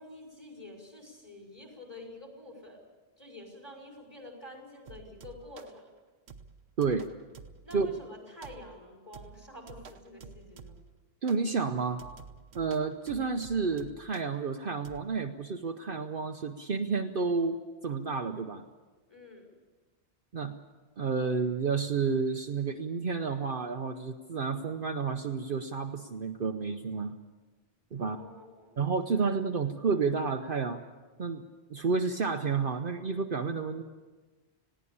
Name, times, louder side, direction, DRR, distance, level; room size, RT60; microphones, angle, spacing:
voice 1, 0.0-2.8 3.2-5.9 7.6-10.8 19.1-19.5 28.0-28.8, left 1 dB, 15° left, 0 dB, 5.1 m, -48 dB
sound 1, 4.9-5.8 6.3-8.1 8.4-8.8 9.1-11.0 11.3-11.5 12.0-14.4 14.8-15.0, right 5 dB, 70° right, 1.3 m, -50 dB
voice 2, 6.8-7.1 7.7-7.9 11.2-12.0 12.5-18.6 20.3-20.6 21.0-27.1 27.9-28.2 28.8-30.8 31.2-31.4 31.7-33.8, right 5 dB, 55° right, 5 dB, 1.0 m, -30 dB
20.5 x 16.0 x 8.6 m, 1.3 s
omnidirectional pair, 1.1 m